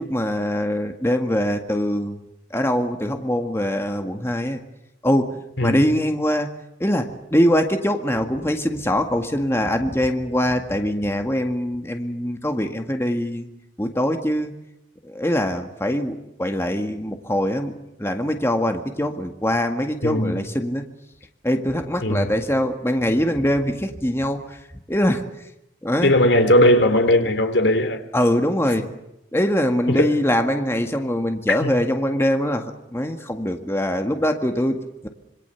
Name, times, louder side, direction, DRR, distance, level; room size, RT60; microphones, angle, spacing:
voice 1, 0.0-2.2 2.5-4.6 5.0-6.5 6.8-13.5 13.8-14.5 15.0-20.9 21.4-24.6 24.9-25.3 25.8-26.1 28.1-28.9 29.3-35.1, equal, 15° left, 5 dB, 1.9 m, -23 dB
voice 2, 20.0-20.4 22.0-22.3 26.0-28.0 29.9-30.2 31.6-31.8, left 1 dB, 70° left, 8 dB, 3.3 m, -18 dB
26.5 x 24.5 x 7.0 m, 0.86 s
head